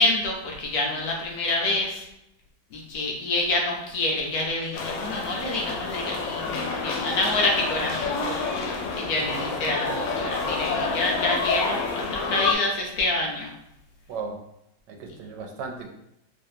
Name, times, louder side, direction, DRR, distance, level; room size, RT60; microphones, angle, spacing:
voice 1, 0.0-2.1 2.7-8.3 9.0-13.5, left 2 dB, 65° left, 0 dB, 1.1 m, -27 dB
sound 1, 4.7-12.5, left 4 dB, 85° left, 1.3 m, -28 dB
voice 2, 9.2-9.5 14.1-14.4 14.9-15.9, right 4 dB, 75° right, 3 dB, 1.3 m, -36 dB
3.5 x 3.1 x 2.7 m, 0.83 s
omnidirectional pair, 1.9 m